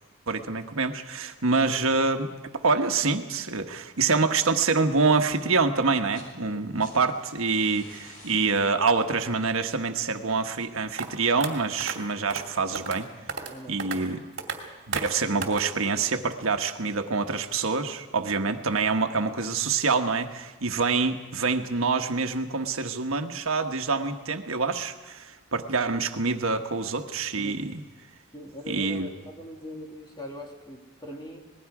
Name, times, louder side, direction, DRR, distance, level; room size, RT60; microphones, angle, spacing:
voice 1, 0.3-13.1 13.7-14.2 14.9-27.8 28.7-29.1, right 4 dB, 85° right, 6 dB, 1.2 m, -26 dB
sound 1, 6.1-6.4 6.6-11.5 12.7-12.8, left 1 dB, 75° left, 6.0 m, -53 dB
sound 2, 11.0-11.1 11.4-11.5 11.8-11.9 12.3-12.4 12.7-13.0 13.3-13.5 13.8-14.0 14.4-14.6 14.9-15.1 15.4-15.6, right 5 dB, 55° right, 2.5 m, -32 dB
voice 2, 13.5-13.9 15.8-15.9 18.2-18.3 27.4-27.6 28.3-31.4, equal, 20° left, 1 dB, 2.4 m, -41 dB
26.5 x 20.0 x 4.9 m, 1.2 s
head